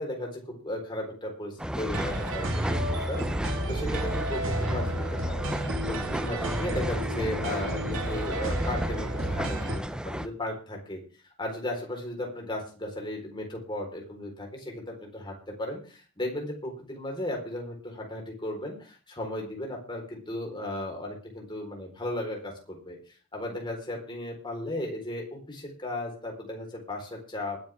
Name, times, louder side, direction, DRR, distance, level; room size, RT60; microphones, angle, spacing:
voice 1, 0.0-3.2 3.7-5.5 5.9-9.7 10.0-11.0 11.4-23.0 23.3-27.6, left 1 dB, 20° left, 1 dB, 4.0 m, -35 dB
sound 1, 1.6-10.3, equal, 5° right, 0.5 m, -34 dB
sound 2, 1.9-9.8, right 1 dB, 70° right, 1.8 m, -31 dB
20.0 x 10.0 x 3.5 m, 0.37 s
head